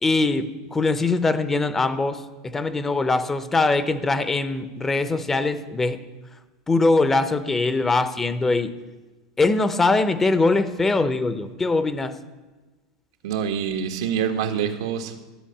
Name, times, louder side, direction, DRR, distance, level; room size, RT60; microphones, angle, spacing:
voice 1, 0.0-6.0 6.7-8.7 9.4-12.1, left 3 dB, 10° left, 11 dB, 0.6 m, -22 dB
voice 2, 13.2-15.2, right 8 dB, 85° right, 5 dB, 1.4 m, -26 dB
13.0 x 5.2 x 8.6 m, 1.2 s
supercardioid pair, 155°, 3 cm